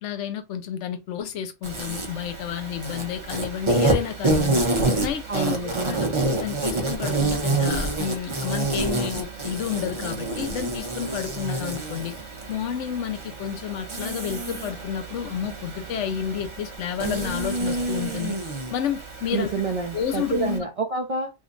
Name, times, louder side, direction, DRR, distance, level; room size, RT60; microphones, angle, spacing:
voice 1, 0.0-4.6 5.0-12.1 12.5-18.4 18.7-19.5 19.9-20.7, left 9 dB, 80° left, 0.9 m, -30 dB
Insect, 1.6-20.6, right 2 dB, 30° right, 0.7 m, -28 dB
voice 2, 5.3-6.2 19.3-21.3, right 4 dB, 60° right, 0.3 m, -28 dB
2.6 x 2.2 x 3.7 m
omnidirectional pair, 1.2 m